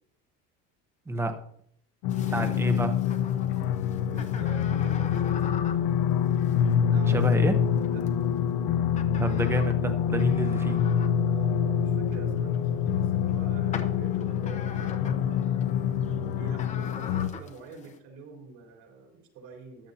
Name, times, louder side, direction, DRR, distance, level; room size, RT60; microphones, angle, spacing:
voice 1, 1.1-1.4 2.3-2.9 7.1-7.5 9.2-10.8, right 1 dB, 10° right, 7 dB, 0.9 m, -27 dB
sound 1, 2.0-17.3, left 8 dB, 70° left, 1.0 m, -26 dB
sound 2, 2.1-18.0, left 6 dB, 20° left, 0.8 m, -45 dB
voice 2, 2.2-2.6 3.9-6.0 6.8-7.5 7.8-8.3 11.2-15.7 16.3-19.9, right 4 dB, 65° right, 0 dB, 4.3 m, -45 dB
14.5 x 11.5 x 2.9 m, 0.67 s
cardioid pair, 175°, 32 cm